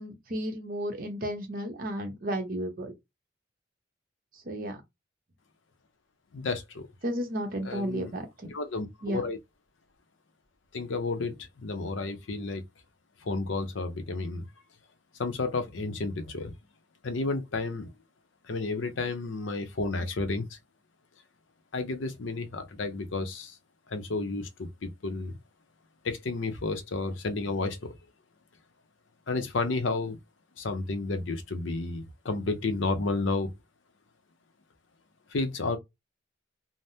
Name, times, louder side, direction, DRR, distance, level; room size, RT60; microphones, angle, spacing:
voice 1, 0.0-2.9 4.3-4.8 7.0-8.5 9.0-9.2, right 1 dB, 50° right, 0.8 m, -33 dB
voice 2, 6.3-6.9 7.6-8.1 8.5-9.4 10.7-12.6 13.2-14.5 15.2-16.5 17.0-17.9 18.5-20.6 21.7-23.6 23.9-25.4 26.0-28.0 29.3-30.2 30.6-33.5 35.3-35.8, left 3 dB, 75° left, 0.6 m, -31 dB
3.4 x 2.0 x 2.7 m
head